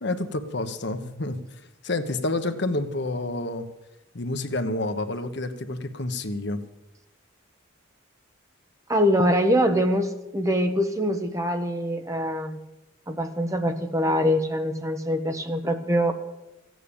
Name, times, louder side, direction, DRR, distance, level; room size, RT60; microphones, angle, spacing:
voice 1, 0.0-3.7 4.1-6.6, left 2 dB, 55° left, 8 dB, 1.1 m, -29 dB
voice 2, 8.9-12.6 13.1-16.1, equal, 15° right, 6 dB, 1.1 m, -24 dB
15.0 x 9.3 x 8.6 m, 0.96 s
head